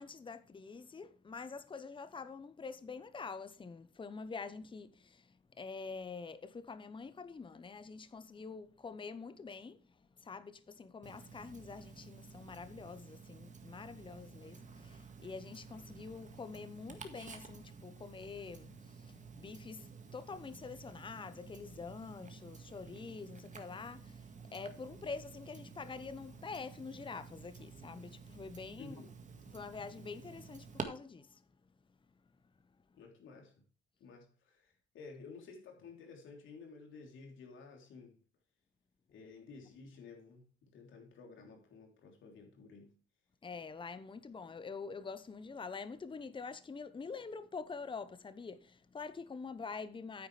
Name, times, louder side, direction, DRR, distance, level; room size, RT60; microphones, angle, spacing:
voice 1, 0.0-9.8 10.2-29.0 29.5-31.4 43.4-50.3, left 4 dB, 25° left, 0.8 m, -46 dB
Tick-tock, 11.0-30.8, right 5 dB, 40° right, 1.8 m, -51 dB
voice 2, 28.8-29.1 32.9-33.5 34.0-38.2 39.1-42.9, left 4 dB, 75° left, 3.4 m, -53 dB
9.4 x 9.1 x 3.3 m
cardioid pair, 90°, 20 cm